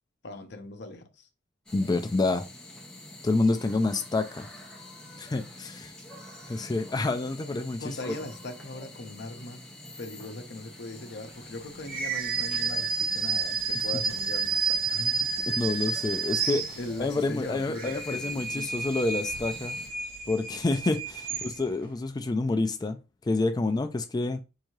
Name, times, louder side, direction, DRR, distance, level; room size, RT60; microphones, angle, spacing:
voice 1, 0.2-1.3 7.8-9.6 10.0-15.4 16.8-18.7, left 2 dB, 60° left, 0.7 m, -39 dB
voice 2, 1.7-2.5 3.2-4.5 5.2-5.9 6.5-8.1 15.5-19.8 20.3-24.4, left 2 dB, 20° left, 0.3 m, -28 dB
sound 1, 1.7-19.9, left 1 dB, 5° left, 1.1 m, -47 dB
sound 2, 11.9-17.1 17.6-21.8, right 5 dB, 50° right, 0.7 m, -30 dB
4.7 x 2.7 x 3.1 m
head